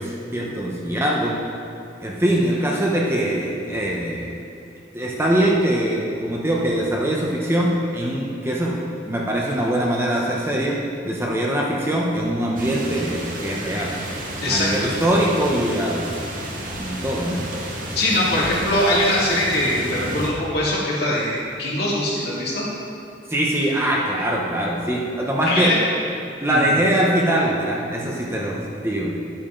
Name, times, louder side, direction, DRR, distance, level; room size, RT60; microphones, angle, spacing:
voice 1, 0.0-1.4 2.0-4.4 4.9-8.8 9.1-10.8 11.0-13.9 14.5-16.1 16.8-17.4 23.3-25.7 26.4-29.1, right 1 dB, 15° right, -3 dB, 0.9 m, -22 dB
sound 1, 12.6-20.3, right 1 dB, 45° right, 1.5 m, -32 dB
sound 2, 13.4-17.3 17.8-19.3 19.6-20.0, equal, 70° right, 1.9 m, -43 dB
voice 2, 14.4-14.9 17.9-22.7 25.5-25.8 26.5-26.7, left 1 dB, 55° left, -6 dB, 2.6 m, -22 dB
11.0 x 8.7 x 3.9 m, 2.5 s
head